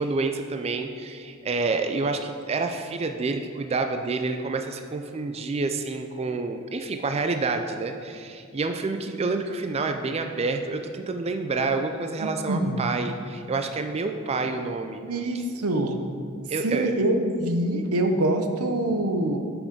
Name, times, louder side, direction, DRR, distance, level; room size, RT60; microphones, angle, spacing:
voice 1, 0.0-15.0 16.5-16.9, right 3 dB, 30° right, 6 dB, 0.4 m, -28 dB
voice 2, 12.2-12.9 15.0-16.0 16.6-19.4, right 1 dB, 90° right, 5 dB, 0.8 m, -25 dB
8.4 x 6.1 x 5.1 m, 2.3 s
head